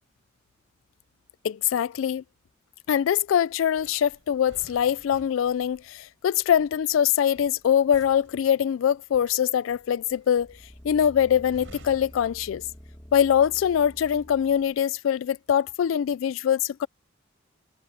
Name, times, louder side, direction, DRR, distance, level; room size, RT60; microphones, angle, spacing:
voice 1, 1.4-2.2 2.9-10.6 10.8-12.6 13.1-16.9, left 9 dB, 85° left, 0.3 m, -23 dB
sound 1, 3.8-13.1 13.4-13.7, right 1 dB, 85° right, 4.4 m, -54 dB
sound 2, 10.4-14.7 15.2-15.3, equal, 10° left, 1.4 m, -47 dB
head